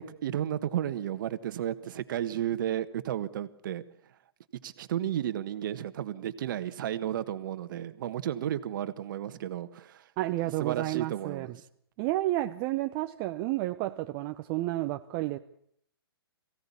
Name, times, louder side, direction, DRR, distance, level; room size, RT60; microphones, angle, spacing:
voice 1, 0.0-3.8 4.6-10.1 10.4-11.5, right 11 dB, 55° right, 1.5 m, -33 dB
voice 2, 10.2-11.5 12.0-15.4, right 16 dB, 35° right, 0.8 m, -31 dB
22.0 x 16.5 x 8.5 m
hypercardioid pair, 125°, 13 cm